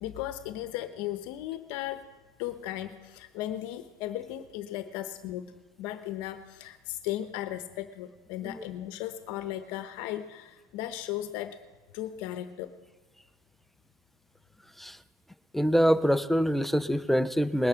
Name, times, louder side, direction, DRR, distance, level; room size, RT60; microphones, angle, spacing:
voice 1, 0.0-2.1 2.4-5.5 5.8-11.6 11.9-12.7, left 13 dB, 50° left, 9 dB, 0.9 m, -36 dB
voice 2, 15.5-17.7, equal, ahead, 13 dB, 0.4 m, -25 dB
20.0 x 10.5 x 5.7 m, 1.3 s
supercardioid pair, 155°, 10 cm